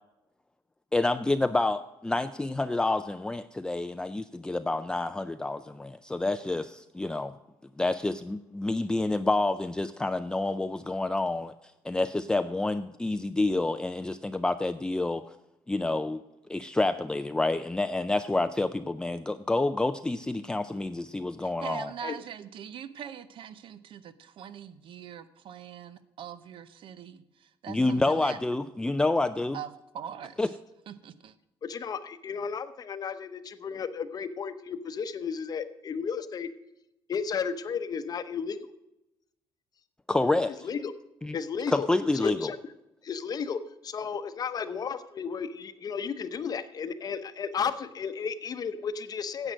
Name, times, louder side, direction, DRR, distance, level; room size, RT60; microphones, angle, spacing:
voice 1, 0.9-7.3 7.8-11.5 11.8-15.2 15.7-16.2 16.5-21.9 27.7-29.6 30.4-30.5 40.1-40.7 41.2-41.4 41.7-42.5, left 2 dB, 10° left, 9 dB, 0.3 m, -28 dB
voice 2, 21.4-28.4 29.5-30.4 30.9-31.3, right 9 dB, 65° right, 13 dB, 0.7 m, -42 dB
voice 3, 31.6-36.5 37.1-38.7 40.6-40.9 41.3-41.9 42.2-42.6 43.0-49.5, left 6 dB, 40° left, 11 dB, 0.8 m, -33 dB
10.0 x 7.9 x 6.3 m, 0.91 s
cardioid pair, 125°, 10 cm